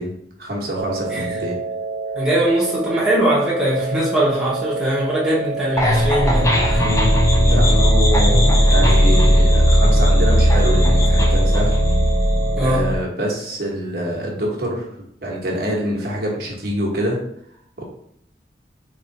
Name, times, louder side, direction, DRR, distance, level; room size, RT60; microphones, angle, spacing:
voice 1, 0.0-1.6 6.7-7.1 7.4-11.7 12.6-14.9 15.2-17.2 17.8-17.9, equal, 60° right, -3 dB, 1.0 m, -25 dB
sound 1, 0.8-12.8, right 4 dB, 90° right, 0.4 m, -28 dB
voice 2, 2.1-6.9 12.6-12.9, right 1 dB, 5° right, -7 dB, 1.0 m, -21 dB
sound 2, 5.8-12.9, equal, 15° left, 0.4 m, -16 dB
3.3 x 3.2 x 3.9 m, 0.69 s
head